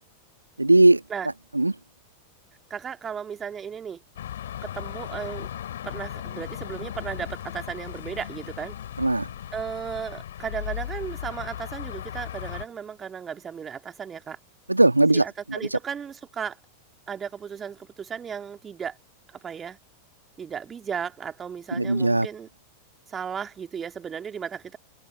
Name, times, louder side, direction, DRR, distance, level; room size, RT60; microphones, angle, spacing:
voice 1, 0.6-1.0 1.5-1.7 9.0-9.3 14.7-15.8 21.7-22.3, right 2 dB, 85° right, 1.6 m, -19 dB
voice 2, 2.7-4.0 4.6-5.5 5.8-8.8 9.5-14.4 15.1-16.6 17.1-19.0 19.3-19.8 20.4-22.5 23.1-24.8, right 7 dB, 20° right, 2.6 m, -35 dB
sound 1, 4.2-12.7, left 11 dB, 60° left, 3.9 m, -36 dB
figure-of-eight pair, 90°, 0 cm